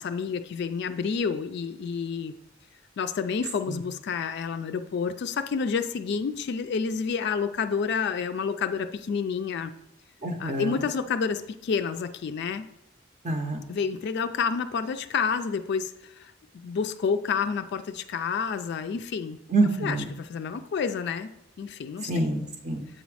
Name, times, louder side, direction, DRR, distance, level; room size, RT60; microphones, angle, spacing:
voice 1, 0.0-2.3 3.0-9.7 10.4-12.7 13.7-19.4 19.8-21.3 21.6-22.3, left 6 dB, 60° left, 9 dB, 0.3 m, -29 dB
voice 2, 10.2-10.9 13.2-13.6 19.5-20.1 22.0-22.9, right 2 dB, 35° right, 4 dB, 0.6 m, -27 dB
7.6 x 4.1 x 4.7 m, 0.87 s
head